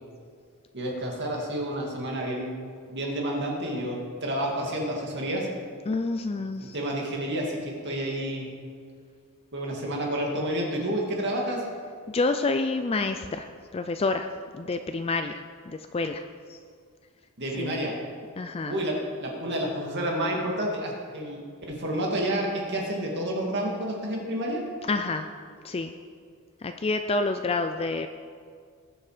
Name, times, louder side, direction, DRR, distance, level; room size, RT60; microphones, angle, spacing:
voice 1, 0.7-2.5 2.9-5.5 6.6-8.5 9.5-11.6 17.4-17.9 18.7-24.6, right 1 dB, 50° right, -1 dB, 2.4 m, -30 dB
voice 2, 5.9-6.8 12.1-13.5 13.7-14.3 14.5-16.2 16.5-16.6 17.6-17.8 18.4-18.8 24.9-25.3 25.6-25.9 26.6-28.1, left 3 dB, 25° left, 7 dB, 0.4 m, -28 dB
19.5 x 7.3 x 5.0 m, 2.1 s
head